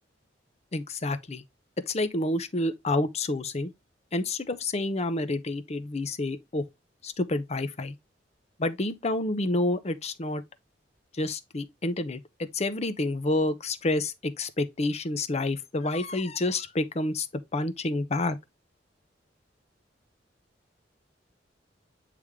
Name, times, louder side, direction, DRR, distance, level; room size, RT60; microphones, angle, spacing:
voice 1, 0.7-1.4 1.9-3.7 4.1-6.6 7.0-7.9 8.6-10.4 11.1-17.3 17.5-18.4, left 2 dB, 35° left, 0.7 m, -29 dB
8.1 x 3.4 x 3.5 m
head